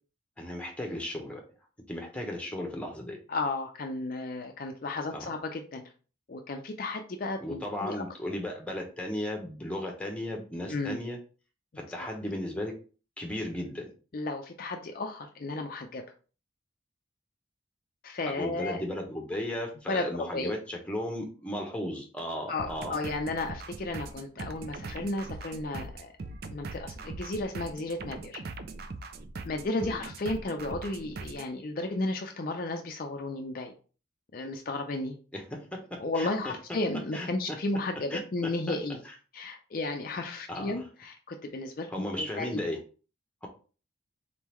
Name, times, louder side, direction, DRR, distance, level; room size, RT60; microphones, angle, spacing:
voice 1, 0.4-1.4 1.9-3.2 5.1-5.3 7.4-11.2 11.8-12.7 13.2-13.9 18.3-23.0 29.8-30.0 35.3-36.5 37.1-37.6 38.1-38.8 40.5-40.8 41.9-42.8 43.4-43.5, left 1 dB, 5° left, 1 dB, 0.9 m, -35 dB
voice 2, 3.3-5.8 6.3-8.0 10.7-11.0 14.1-16.0 18.0-18.8 19.9-20.0 20.3-20.5 22.5-26.1 26.4-28.4 29.4-33.7 34.3-35.1 36.0-39.0 39.3-42.6, left 2 dB, 45° left, 3 dB, 0.5 m, -33 dB
sound 1, 22.6-31.5, right 3 dB, 50° right, 0.4 m, -41 dB
4.1 x 3.7 x 3.0 m, 0.37 s
head